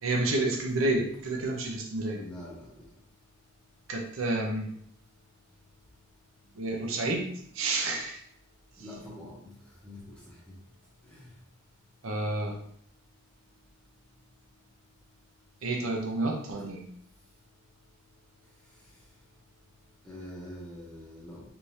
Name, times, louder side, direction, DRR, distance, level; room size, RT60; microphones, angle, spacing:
voice 1, 0.0-2.2 3.9-4.7 6.6-7.3 7.5-8.2 12.0-12.6 15.6-16.8, right 2 dB, 85° right, 1 dB, 0.7 m, -29 dB
voice 2, 2.1-2.7 8.8-9.5 9.8-10.1 20.0-21.4, left 1 dB, 5° left, -6 dB, 0.9 m, -44 dB
3.3 x 3.3 x 2.8 m, 0.67 s
head